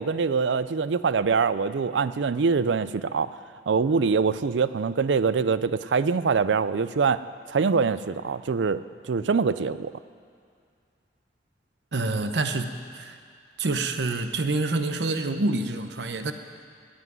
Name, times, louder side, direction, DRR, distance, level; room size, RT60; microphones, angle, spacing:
voice 1, 0.0-3.3 3.7-7.2 7.5-9.9, right 5 dB, 85° right, 15 dB, 0.5 m, -24 dB
voice 2, 11.9-13.2 13.6-16.3, right 2 dB, 70° right, 8 dB, 0.9 m, -27 dB
18.0 x 6.1 x 9.4 m, 2.3 s
head